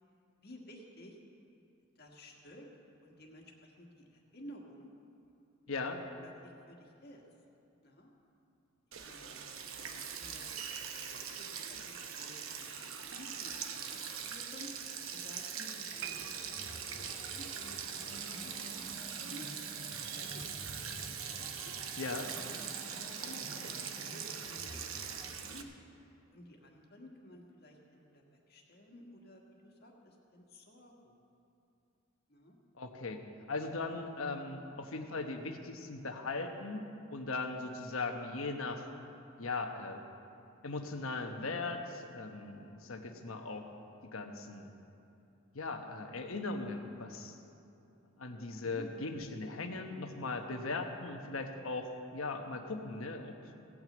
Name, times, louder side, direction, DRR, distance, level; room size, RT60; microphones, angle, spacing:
voice 1, 0.4-1.2 1.9-2.7 3.0-4.9 6.2-7.2 7.8-8.1 9.0-9.5 9.9-10.5 11.0-14.7 15.1-16.2 16.5-18.8 19.1-19.5 20.1-21.8 22.3-23.7 24.0-24.7 25.0-25.7 26.3-31.2 32.3-32.6 48.6-48.8, left 1 dB, 50° left, 0 dB, 1.7 m, -54 dB
voice 2, 5.7-6.0 22.0-22.3 32.8-33.2 33.5-38.9 39.4-40.0 40.6-43.7 44.0-44.7 45.5-47.3 48.2-53.6, left 3 dB, 70° left, 5 dB, 1.1 m, -39 dB
Sink (filling or washing), 8.9-25.6, right 7 dB, 70° right, 0.9 m, -42 dB
sound 1, 15.9-25.3, equal, ahead, 3.1 m, -51 dB
sound 2, 16.0-19.3 19.6-19.9 20.5-20.6, right 10 dB, 55° right, 0.4 m, -50 dB
17.0 x 6.1 x 7.9 m, 2.8 s
head